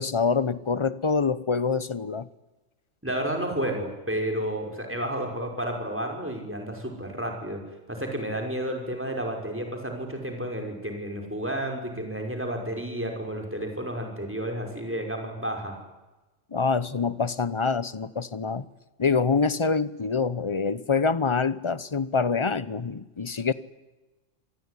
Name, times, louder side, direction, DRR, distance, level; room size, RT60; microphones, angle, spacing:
voice 1, 0.0-2.3 16.5-18.6 19.0-23.5, left 5 dB, 25° left, 16 dB, 0.9 m, -25 dB
voice 2, 3.0-7.6 7.9-15.8, right 1 dB, 10° right, 2 dB, 5.5 m, -31 dB
27.0 x 20.5 x 9.9 m, 1.1 s
omnidirectional pair, 1.2 m